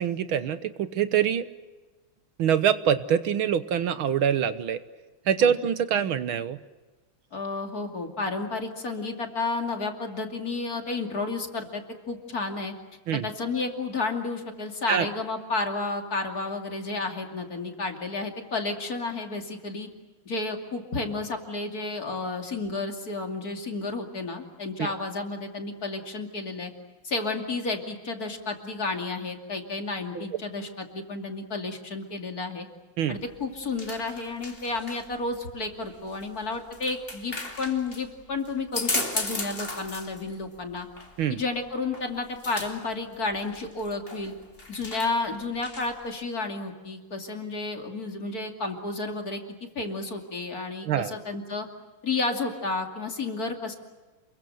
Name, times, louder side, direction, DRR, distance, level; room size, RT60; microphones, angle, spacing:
voice 1, 0.0-1.5 2.4-4.8 5.3-6.6 13.1-13.3 14.9-15.1 24.8-24.9 30.1-30.3 33.0-33.2 41.2-41.4 50.8-51.2, right 8 dB, 70° right, 12 dB, 1.8 m, -25 dB
voice 2, 7.3-12.7 13.1-19.9 20.3-26.7 27.0-32.7 33.1-40.9 41.3-44.3 44.7-49.4 49.7-51.7 52.0-53.8, left 3 dB, 45° left, 4 dB, 3.1 m, -31 dB
sound 1, 33.1-46.1, left 2 dB, 25° left, 2.9 m, -37 dB
28.5 x 22.5 x 7.9 m, 1.2 s
omnidirectional pair, 2.4 m